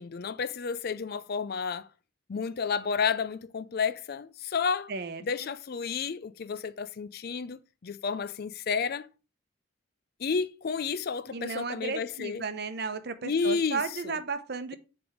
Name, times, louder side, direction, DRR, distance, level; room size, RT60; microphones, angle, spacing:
voice 1, 0.0-1.9 2.3-4.9 5.2-9.1 10.2-12.4 13.2-14.2, left 5 dB, 50° left, 0.4 m, -31 dB
voice 2, 4.9-5.5 11.3-14.8, right 4 dB, 50° right, 0.8 m, -34 dB
10.0 x 3.5 x 4.9 m
head